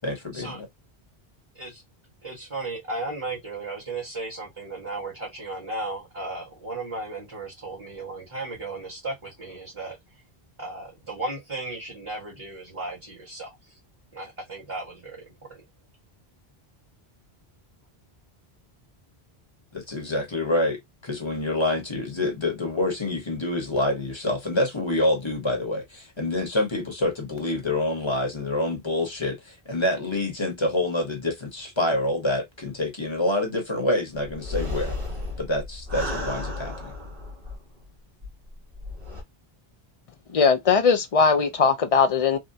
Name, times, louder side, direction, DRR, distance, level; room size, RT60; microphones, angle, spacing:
voice 1, 0.0-0.7 19.7-35.0 35.4-36.9, left 1 dB, 30° left, 1.0 m, -27 dB
voice 2, 2.2-10.0 10.6-13.5 14.1-15.2 15.5-15.6, right 2 dB, 30° right, 1.5 m, -35 dB
sound 1, 34.3-37.8 38.2-38.3 38.7-39.2, left 2 dB, 60° right, 1.5 m, -33 dB
voice 3, 40.3-42.4, left 5 dB, 45° left, 0.5 m, -19 dB
3.6 x 2.2 x 2.6 m
omnidirectional pair, 1.0 m